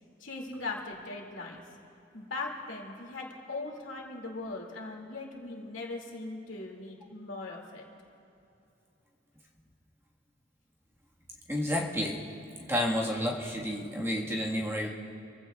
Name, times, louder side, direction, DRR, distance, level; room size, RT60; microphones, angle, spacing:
voice 1, 0.2-1.6 2.1-7.8, left 3 dB, 80° left, -1 dB, 2.4 m, -39 dB
voice 2, 11.5-12.2 12.7-14.9, left 1 dB, 15° right, -3 dB, 1.5 m, -30 dB
26.5 x 15.5 x 2.4 m, 2.9 s
head